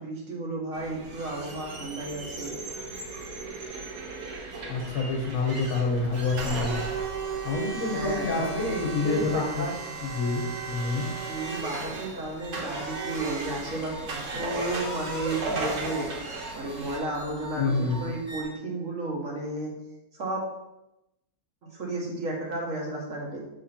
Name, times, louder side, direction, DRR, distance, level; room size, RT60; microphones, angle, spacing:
voice 1, 0.0-2.6 7.8-9.9 11.2-19.7 20.1-20.4 21.6-23.4, right 2 dB, 55° right, -3 dB, 1.8 m, -33 dB
sound 1, 0.7-17.0, right 3 dB, 80° right, 1.7 m, -35 dB
voice 2, 4.7-6.7 7.4-8.4 8.7-9.7 10.0-11.1 17.6-18.0, left 3 dB, 70° left, 0 dB, 1.7 m, -27 dB
sound 2, 10.7-18.4, right 2 dB, 15° right, 2.0 m, -44 dB
6.0 x 4.0 x 4.4 m, 0.91 s
omnidirectional pair, 1.6 m